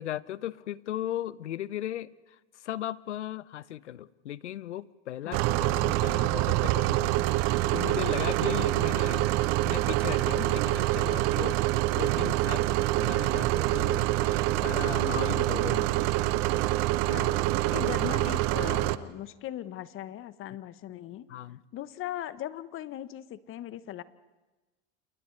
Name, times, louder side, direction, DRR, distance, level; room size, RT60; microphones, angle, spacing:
voice 1, 0.0-9.3 9.7-12.7 13.0-16.1 21.3-21.6, left 12 dB, 90° left, 20 dB, 0.7 m, -37 dB
sound 1, 5.3-19.0, right 17 dB, 50° right, 0.8 m, -26 dB
voice 2, 17.1-17.4 17.7-21.3 21.7-24.0, left 12 dB, 40° left, 15 dB, 1.0 m, -38 dB
29.5 x 28.5 x 3.3 m, 1.2 s
hypercardioid pair, 95°, 34 cm